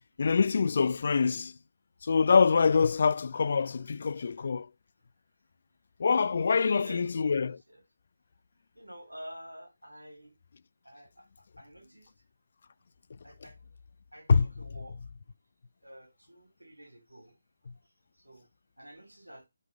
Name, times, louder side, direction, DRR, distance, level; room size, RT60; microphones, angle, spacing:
voice 1, 0.2-1.5 2.0-4.7 6.0-7.6 14.3-14.5, left 5 dB, 50° left, 0.3 m, -25 dB
voice 2, 6.5-7.8 8.7-10.4 10.8-12.1 13.2-13.6 14.1-15.0 15.8-17.3 18.2-18.5 18.8-19.5, equal, 85° right, 2.0 m, -49 dB
8.2 x 3.4 x 6.1 m
figure-of-eight pair, 150°, 0 cm